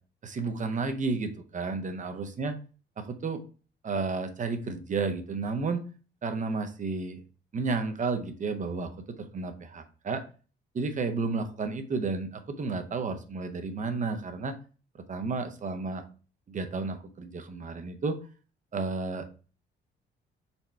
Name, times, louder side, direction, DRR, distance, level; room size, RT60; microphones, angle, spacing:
voice 1, 0.2-2.5 3.1-3.4 3.8-5.8 6.2-7.2 7.5-8.9 9.2-10.2 10.7-14.5 15.1-16.0 16.5-18.2 18.7-19.3, right 4 dB, 40° right, 7 dB, 0.7 m, -32 dB
4.2 x 2.2 x 4.3 m, 0.36 s
cardioid pair, 90°, 20 cm